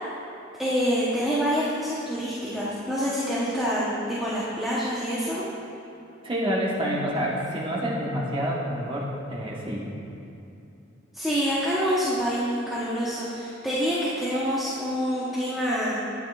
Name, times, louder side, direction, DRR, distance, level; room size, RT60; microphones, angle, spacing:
voice 1, 0.6-5.4 11.1-16.0, equal, ahead, -10 dB, 0.9 m, -26 dB
voice 2, 6.2-9.8, equal, 25° right, -5 dB, 1.2 m, -28 dB
12.5 x 8.9 x 2.4 m, 2.7 s
head